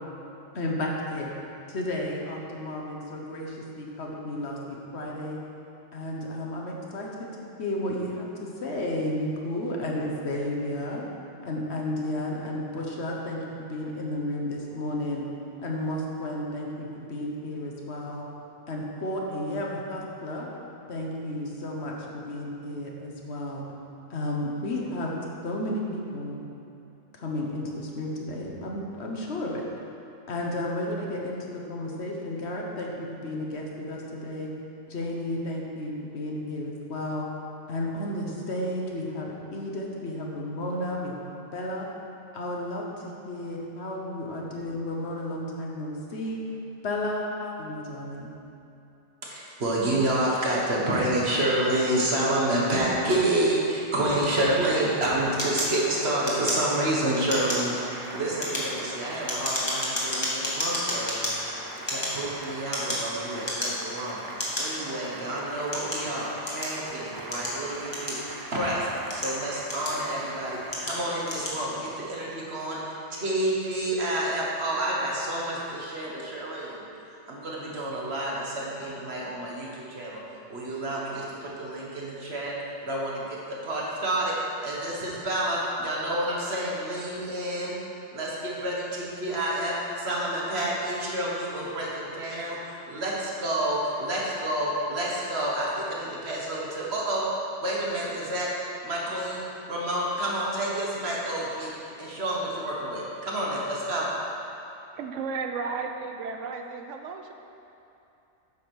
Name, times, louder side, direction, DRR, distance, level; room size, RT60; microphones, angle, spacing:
voice 1, 0.5-1.3 1.7-5.4 5.9-7.3 7.6-11.1 11.4-13.4 13.7-15.3 15.6-18.2 18.7-20.5 20.9-23.6 24.1-26.4 27.1-29.7 30.3-34.5 34.9-37.3 37.7-41.2 41.5-41.9 42.3-46.4 46.8-48.3, left 1 dB, 60° left, -1 dB, 1.2 m, -32 dB
voice 2, 49.3-61.3 61.9-68.9 69.1-80.2 80.5-82.5 82.8-84.3 84.6-87.7 88.1-97.3 97.6-98.5 98.8-99.4 99.7-101.7 102.0-104.1, right 1 dB, 55° right, -4 dB, 1.7 m, -29 dB
Applause, 53.4-72.0, right 2 dB, 35° right, 0.3 m, -41 dB
sound 1, 55.4-56.9 57.2-57.7 58.2-61.3 61.8-63.1 63.4-63.9 64.4-64.6 65.3-66.8 67.3-68.5 68.9-70.2 70.7-71.0 71.2-71.6, left 1 dB, 20° left, 1.4 m, -31 dB
voice 3, 105.0-107.3, right 5 dB, 75° right, 4 dB, 0.9 m, -33 dB
8.6 x 5.0 x 6.2 m, 2.8 s
omnidirectional pair, 1.3 m